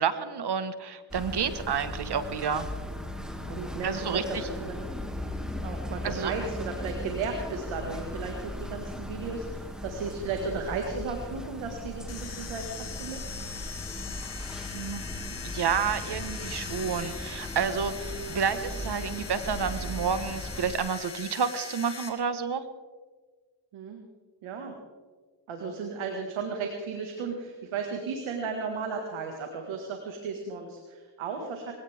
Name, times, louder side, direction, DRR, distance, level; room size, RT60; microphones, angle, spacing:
voice 1, 0.0-2.7 3.8-4.5 6.0-6.3 14.7-15.1 15.4-22.6, right 6 dB, 55° right, 11 dB, 1.6 m, -30 dB
sound 1, 1.1-20.7, left 1 dB, ahead, 2.4 m, -38 dB
voice 2, 3.5-4.8 5.6-13.2 23.7-24.1 24.4-24.7 25.5-31.7, right 4 dB, 90° right, 3 dB, 2.1 m, -35 dB
sound 2, 12.1-22.1, left 6 dB, 60° left, 3.2 m, -41 dB
22.0 x 17.0 x 3.7 m, 1.5 s
cardioid pair, 70°, 47 cm